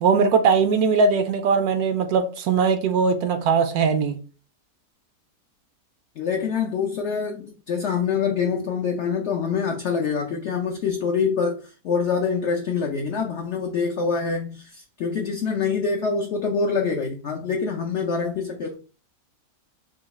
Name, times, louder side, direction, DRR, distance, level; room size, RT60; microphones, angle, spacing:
voice 1, 0.0-4.2, right 5 dB, 70° right, 1.0 m, -20 dB
voice 2, 6.2-18.7, left 5 dB, 75° left, 0.6 m, -25 dB
3.8 x 2.3 x 4.0 m
omnidirectional pair, 1.8 m